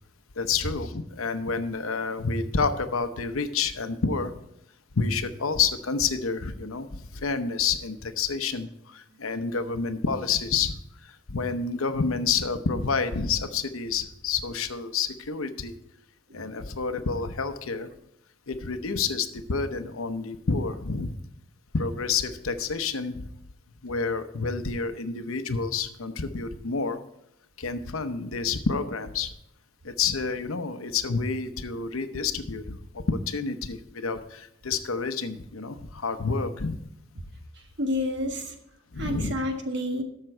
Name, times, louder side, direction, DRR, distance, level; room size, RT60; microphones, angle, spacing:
voice 1, 0.4-4.3 4.9-10.7 11.0-15.7 16.3-17.9 18.5-21.1 21.7-23.3 23.8-27.0 27.6-29.3 29.8-36.8 38.9-39.3, left 5 dB, 90° left, 9 dB, 0.8 m, -29 dB
voice 2, 37.6-38.5 39.0-40.0, left 1 dB, 55° right, 4 dB, 1.5 m, -30 dB
12.5 x 6.6 x 4.4 m, 0.78 s
head